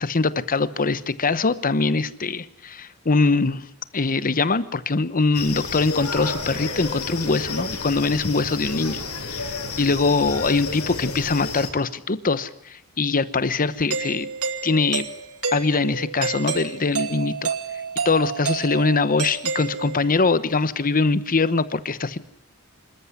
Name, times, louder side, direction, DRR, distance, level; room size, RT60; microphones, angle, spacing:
voice 1, 0.0-3.6 3.9-9.0 9.3-14.3 14.6-15.1 15.5-17.5 18.0-22.2, left 3 dB, 40° left, 14 dB, 0.9 m, -22 dB
sound 1, 5.3-11.7, left 3 dB, 85° left, 6.2 m, -31 dB
Doorbell, 13.9-20.2, right 5 dB, 75° right, 2.3 m, -29 dB
26.5 x 14.0 x 9.8 m, 0.72 s
head